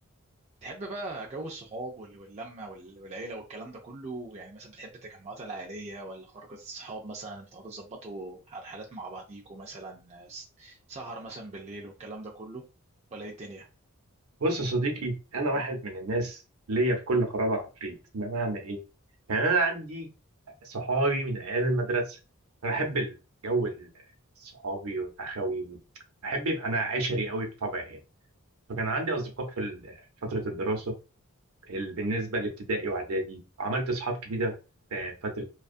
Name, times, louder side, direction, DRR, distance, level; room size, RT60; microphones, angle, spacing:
voice 1, 0.6-12.6 13.1-13.7, right 2 dB, 30° right, 0 dB, 0.3 m, -41 dB
voice 2, 14.4-16.4 16.7-18.8 19.3-20.1 20.6-22.2 22.6-23.2 23.4-23.9 24.4-25.8 26.2-28.0 28.7-29.9 30.2-31.0 31.7-34.5 34.9-35.4, right 2 dB, 75° right, 3 dB, 0.7 m, -29 dB
2.5 x 2.3 x 2.3 m, 0.31 s
head